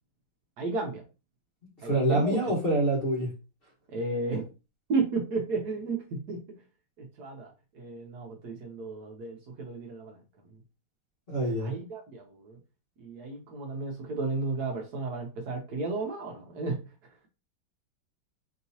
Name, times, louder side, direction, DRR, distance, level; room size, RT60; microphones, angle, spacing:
voice 1, 0.6-1.0 1.8-2.6 3.9-4.5 4.9-6.6 7.0-10.2 11.6-12.6 13.0-16.8, right 3 dB, 65° right, 1.2 m, -33 dB
voice 2, 1.8-3.3 11.3-11.7, right 1 dB, 35° left, 1.3 m, -26 dB
4.7 x 2.9 x 2.7 m
omnidirectional pair, 2.1 m